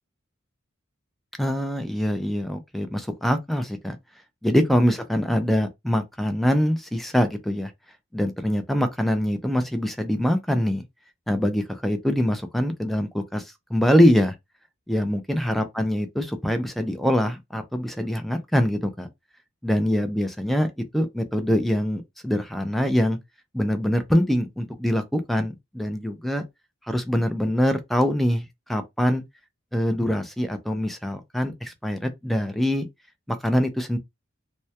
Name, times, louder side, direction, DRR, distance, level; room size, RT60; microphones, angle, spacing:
voice 1, 1.4-4.0 4.4-7.7 8.1-10.8 11.3-14.3 14.9-19.1 19.6-23.2 23.5-26.4 26.9-29.2 29.7-32.9 33.3-34.0, equal, ahead, 0.3 m, -24 dB
2.2 x 2.1 x 2.7 m
head